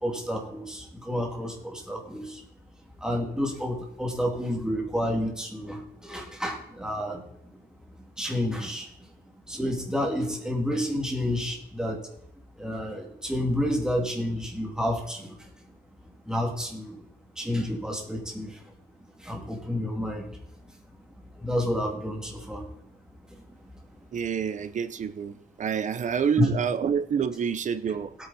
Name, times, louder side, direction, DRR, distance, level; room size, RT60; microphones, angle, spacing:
voice 1, 0.0-2.4 3.0-7.7 8.2-8.9 9.5-12.1 12.6-15.5 16.2-17.0 17.4-18.7 19.2-20.8 21.4-22.7 23.3-23.4 23.9-24.0 26.4-26.5, left 1 dB, 5° right, 2.6 m, -30 dB
voice 2, 24.1-28.1, right 7 dB, 50° right, 0.7 m, -27 dB
18.5 x 8.9 x 4.2 m
wide cardioid pair, 170°, 16 cm